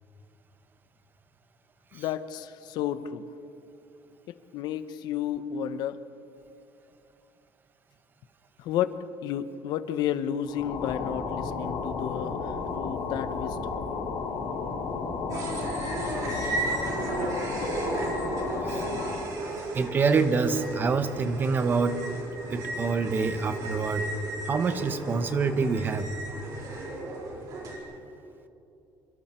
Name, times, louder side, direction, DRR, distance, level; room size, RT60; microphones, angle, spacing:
voice 1, 1.9-3.3 4.5-6.0 8.6-9.0 9.2-13.8, left 10 dB, 65° left, 12 dB, 1.0 m, -32 dB
sound 1, 10.4-19.3, left 4 dB, 80° left, 5.3 m, -33 dB
sound 2, 15.3-27.8, right 2 dB, 50° right, 4.4 m, -34 dB
voice 2, 19.7-22.0 22.5-24.1 24.5-26.1, right 4 dB, 25° right, 10 dB, 1.1 m, -26 dB
27.0 x 24.5 x 4.5 m, 2.8 s
cardioid pair, 160°, 8 cm